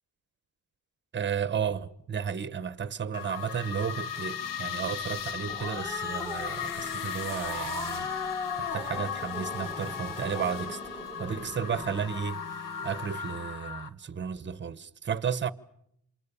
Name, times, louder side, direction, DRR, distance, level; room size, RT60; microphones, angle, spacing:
voice 1, 1.1-8.1 8.6-10.8 11.2-12.4 12.8-15.5, right 7 dB, 30° right, 1.1 m, -33 dB
sound 1, 3.1-13.9, left 8 dB, 60° left, 1.4 m, -37 dB
sound 2, 3.9-13.5, left 4 dB, 45° left, 1.4 m, -50 dB
Growling, 5.2-12.0, left 2 dB, 10° left, 2.8 m, -39 dB
27.5 x 26.5 x 6.9 m
cardioid pair, 110°, 36 cm